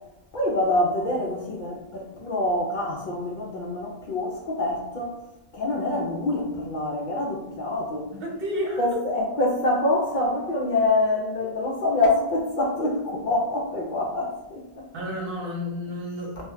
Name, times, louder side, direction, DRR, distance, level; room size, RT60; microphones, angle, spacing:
voice 1, 0.3-5.2 5.5-8.1 8.8-14.9, left 2 dB, 60° left, -1 dB, 0.6 m, -26 dB
voice 2, 8.1-8.9 14.9-16.4, equal, 65° right, -2 dB, 1.0 m, -31 dB
2.2 x 2.1 x 3.7 m, 0.95 s
omnidirectional pair, 1.0 m